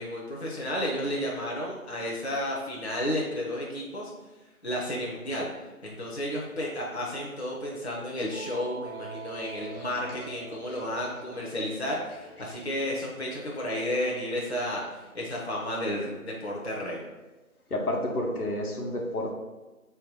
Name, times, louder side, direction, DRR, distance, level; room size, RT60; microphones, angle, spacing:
voice 1, 0.0-4.1 4.6-5.5 5.8-17.0, left 1 dB, 45° left, -4 dB, 0.8 m, -32 dB
sound 1, 8.3-14.8, right 5 dB, 65° right, 0.7 m, -46 dB
voice 2, 17.7-19.3, left 1 dB, 85° left, 0 dB, 1.1 m, -30 dB
3.4 x 3.2 x 4.7 m, 1.2 s
figure-of-eight pair, 175°, 44 cm